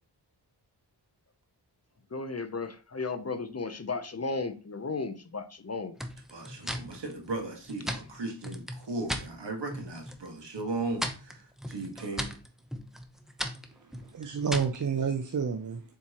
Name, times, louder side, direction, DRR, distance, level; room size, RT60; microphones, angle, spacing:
voice 1, 2.1-6.0 6.6-6.7, left 3 dB, 35° left, 0.8 m, -35 dB
sound 1, 6.0-9.3 9.7-10.3 10.6-14.8, equal, ahead, 0.9 m, -37 dB
voice 2, 6.3-11.0 11.7-12.3, right 2 dB, 75° right, 1.9 m, -36 dB
voice 3, 13.8-15.8, right 6 dB, 45° right, 0.6 m, -30 dB
7.2 x 4.4 x 3.0 m
wide cardioid pair, 60°, 43 cm